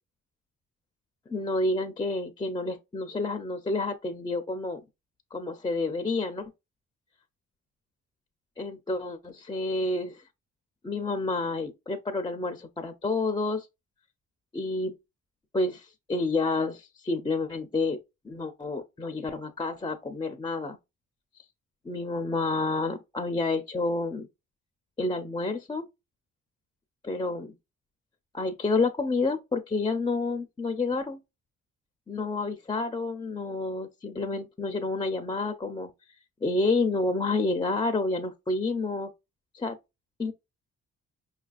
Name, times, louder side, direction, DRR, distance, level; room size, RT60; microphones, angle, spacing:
voice 1, 1.3-4.8 5.3-6.5 8.6-10.2 10.8-13.7 14.5-14.9 15.5-18.0 18.2-20.8 21.8-24.3 25.0-25.9 27.0-27.5 28.3-31.2 32.1-35.9 36.4-39.1 39.5-39.8 40.2-40.3, left 3 dB, 15° left, 0.4 m, -29 dB
5.1 x 2.4 x 2.3 m
cardioid pair, 90°, 30 cm